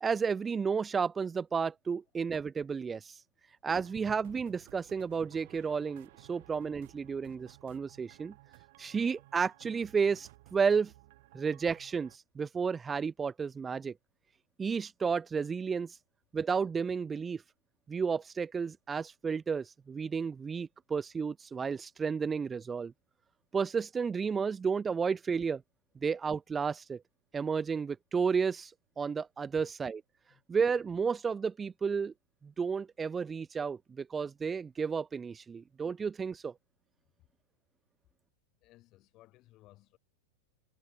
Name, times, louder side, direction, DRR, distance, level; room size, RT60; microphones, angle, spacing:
voice 1, 0.0-3.2 3.6-8.3 8.8-10.9 11.3-13.9 14.6-16.0 16.3-17.4 17.9-22.9 23.5-25.6 26.0-27.0 27.3-30.0 30.5-32.1 32.4-36.5, right 5 dB, 20° right, 0.5 m, -32 dB
sound 1, 3.8-12.2, right 19 dB, 60° right, 3.9 m, -58 dB
voice 2, 38.6-40.0, left 17 dB, 40° left, 6.2 m, -61 dB
hypercardioid pair, 110°, 0 cm